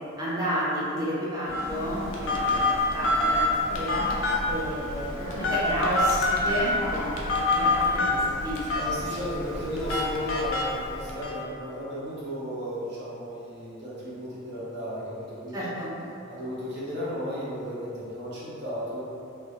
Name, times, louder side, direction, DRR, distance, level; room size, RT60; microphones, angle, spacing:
voice 1, 0.2-4.1 4.5-8.9 15.5-15.9, equal, 20° right, -8 dB, 0.5 m, -31 dB
Telephone, 1.5-11.3, left 2 dB, 70° left, 0.4 m, -27 dB
sound 1, 1.5-10.1, equal, 15° left, 0.7 m, -40 dB
voice 2, 8.7-15.7 16.3-19.0, equal, 55° right, -9 dB, 0.7 m, -34 dB
2.2 x 2.0 x 2.7 m, 2.6 s
head